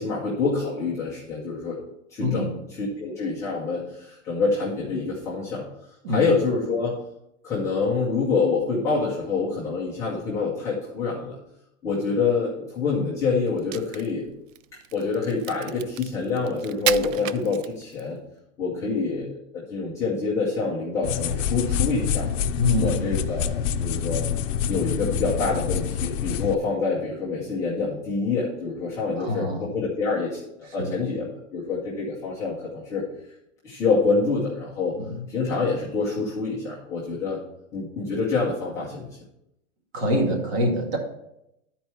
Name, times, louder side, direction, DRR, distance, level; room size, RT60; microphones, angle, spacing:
voice 1, 0.0-1.8 2.1-5.6 6.1-6.9 7.4-11.4 11.8-14.3 14.9-18.2 18.6-22.3 22.8-24.3 24.7-33.0 33.6-35.0 35.3-37.4 37.7-39.1, left 4 dB, 10° left, -9 dB, 0.6 m, -26 dB
voice 2, 2.2-2.5 6.0-6.3 22.6-23.0 29.2-29.7 30.8-31.0 35.0-35.1 39.9-41.0, equal, 50° right, 0 dB, 2.1 m, -25 dB
Crack, 13.5-18.1, right 13 dB, 80° right, 0.5 m, -33 dB
sound 1, 21.0-26.5, left 8 dB, 70° left, 0.6 m, -26 dB
11.0 x 4.5 x 4.3 m, 0.83 s
supercardioid pair, 175°, 39 cm